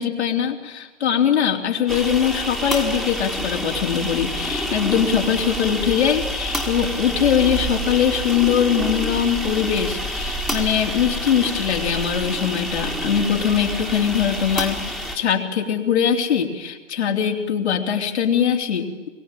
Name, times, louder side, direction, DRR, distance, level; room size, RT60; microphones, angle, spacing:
voice 1, 0.0-14.9 15.1-19.1, left 8 dB, 60° left, 1 dB, 3.2 m, -21 dB
sound 1, 1.9-15.2, equal, ahead, 1.8 m, -28 dB
23.5 x 22.0 x 9.0 m, 1.2 s
figure-of-eight pair, 135°, 38 cm